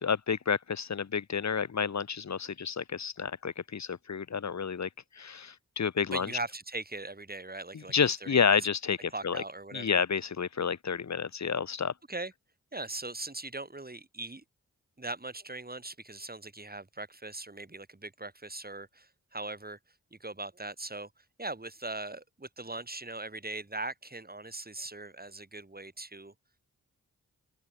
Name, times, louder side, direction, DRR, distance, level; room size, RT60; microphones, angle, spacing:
voice 1, 0.0-6.3 7.7-9.4 9.7-11.9, left 6 dB, 50° left, 1.1 m, -30 dB
voice 2, 6.1-7.9 8.2-8.6 9.1-10.0 12.1-12.3 12.7-14.4 15.0-19.8 20.1-26.3, right 2 dB, 25° right, 4.0 m, -40 dB
cardioid pair, 45°, 35 cm